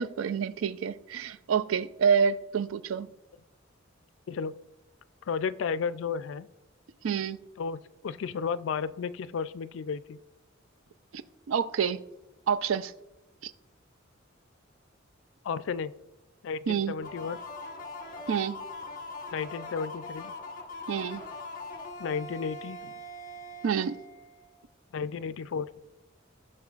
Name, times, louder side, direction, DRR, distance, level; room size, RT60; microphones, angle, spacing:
voice 1, 0.0-3.1 7.0-7.4 11.1-11.2 11.5-12.0 12.5-12.9 13.4-13.5 16.7-16.9 18.3-18.6 20.9-21.2 23.6-24.0, right 7 dB, 85° right, 0.4 m, -28 dB
voice 2, 5.3-6.5 7.6-10.2 15.4-15.9 16.4-17.4 19.3-20.3 22.0-22.9 24.9-25.7, left 6 dB, 65° left, 0.4 m, -33 dB
sound 1, 17.0-24.6, left 2 dB, 45° left, 1.1 m, -42 dB
15.0 x 6.6 x 2.4 m
head